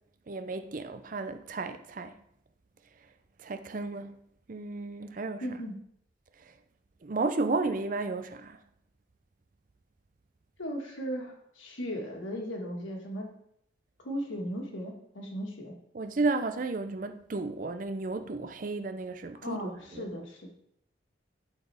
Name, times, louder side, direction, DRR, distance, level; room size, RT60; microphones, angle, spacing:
voice 1, 0.3-2.1 3.4-4.2 4.5-5.5 7.0-8.6 15.9-20.1, right 3 dB, 45° right, 0.5 m, -33 dB
voice 2, 5.4-5.8 10.6-13.4 14.0-15.8 19.4-20.5, equal, 85° left, 1.7 m, -37 dB
11.5 x 4.4 x 3.4 m
head